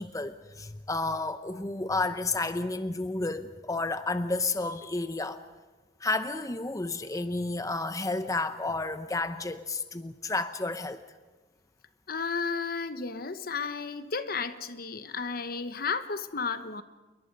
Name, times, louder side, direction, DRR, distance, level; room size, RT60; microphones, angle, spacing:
voice 1, 0.0-5.4 6.0-11.0, left 3 dB, 20° left, 10 dB, 0.8 m, -31 dB
voice 2, 12.1-16.8, left 5 dB, 55° left, 11 dB, 1.0 m, -33 dB
28.5 x 22.5 x 5.4 m, 1.2 s
head